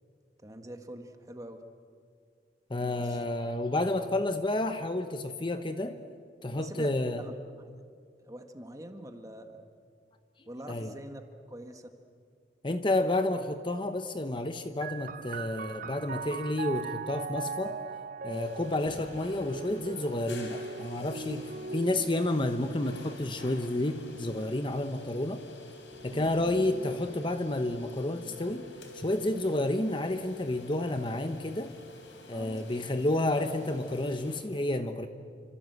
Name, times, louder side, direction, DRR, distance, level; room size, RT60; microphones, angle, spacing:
voice 1, 0.4-1.6 2.8-3.2 6.5-7.8 8.2-9.6 10.5-11.2 11.5-11.9 26.1-26.6 32.3-32.8, right 1 dB, 20° right, 6 dB, 1.7 m, -45 dB
voice 2, 2.7-6.0 6.4-7.2 10.7-10.9 12.6-17.8 18.2-25.4 26.0-31.7 32.3-35.1, left 1 dB, 25° left, 8 dB, 0.9 m, -30 dB
sound 1, 14.8-28.0 28.9-29.7, right 4 dB, 45° right, 0.6 m, -41 dB
sound 2, 18.3-34.4, left 2 dB, 80° left, 4.0 m, -49 dB
28.5 x 25.5 x 8.1 m, 2.2 s
head